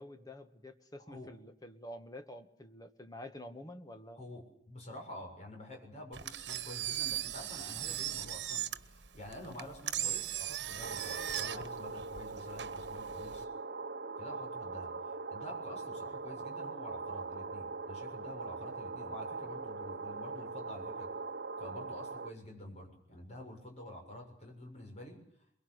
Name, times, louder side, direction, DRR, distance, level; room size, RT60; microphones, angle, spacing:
voice 1, 0.0-4.2, left 1 dB, 20° left, 7 dB, 1.9 m, -48 dB
voice 2, 4.1-13.5 14.2-14.9 15.3-21.1 21.6-25.2, left 1 dB, 40° left, 2 dB, 7.2 m, -48 dB
Engine, 6.1-13.4, right 11 dB, 80° right, 1.2 m, -38 dB
sound 1, 10.8-22.3, right 4 dB, 65° right, 1.0 m, -41 dB
23.0 x 22.5 x 8.3 m, 0.73 s
head